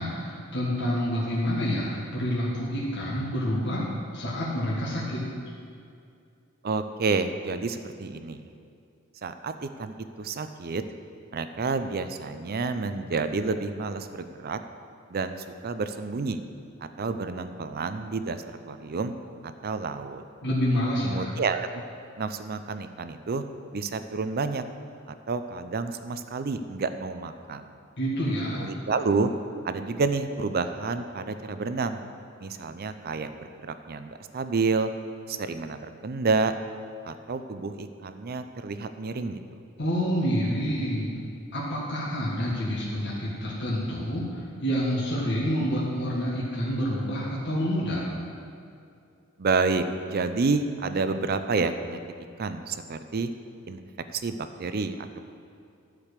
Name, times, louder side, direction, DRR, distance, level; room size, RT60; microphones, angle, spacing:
voice 1, 0.0-3.9 4.1-5.3 20.4-21.4 28.0-28.6 39.8-41.1 41.5-48.0, equal, 55° left, -6 dB, 1.8 m, -28 dB
voice 2, 6.6-8.4 9.2-10.8 11.3-14.6 15.1-15.4 15.6-16.4 16.8-19.1 19.4-20.2 21.0-21.8 22.2-23.4 23.7-24.6 25.1-27.6 28.5-29.3 29.6-32.0 32.4-33.3 33.6-34.9 35.3-36.5 37.0-39.4 49.4-52.0 52.4-53.3 53.7-53.8 54.1-55.2, right 4 dB, 45° right, 10 dB, 0.5 m, -29 dB
12.0 x 5.1 x 6.6 m, 2.5 s
head